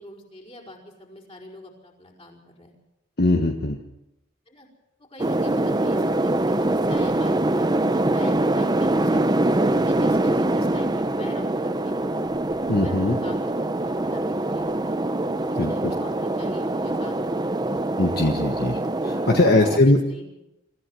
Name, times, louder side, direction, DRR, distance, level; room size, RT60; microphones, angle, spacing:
voice 1, 0.0-2.7 4.5-4.7 5.0-12.0 12.7-15.0 15.3-17.8 19.4-20.4, left 1 dB, 30° left, 0 dB, 5.1 m, -44 dB
voice 2, 3.2-3.8 12.7-13.2 15.6-15.9 18.0-20.0, left 2 dB, 55° left, 4 dB, 1.4 m, -21 dB
sound 1, 5.2-19.8, right 1 dB, 20° right, 0.8 m, -24 dB
25.0 x 15.0 x 7.7 m, 0.91 s
head